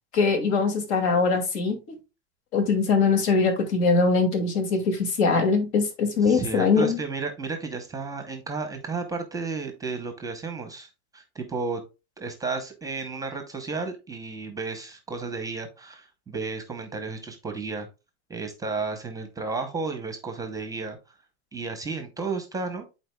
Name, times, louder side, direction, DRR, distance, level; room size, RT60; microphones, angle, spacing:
voice 1, 0.1-1.8 2.5-7.0, left 4 dB, 70° left, 5 dB, 2.3 m, -22 dB
voice 2, 6.2-11.8 12.2-17.9 18.3-21.0 21.5-22.8, right 4 dB, 10° right, 6 dB, 0.7 m, -33 dB
11.0 x 4.3 x 2.2 m, 0.28 s
supercardioid pair, 155°, 34 cm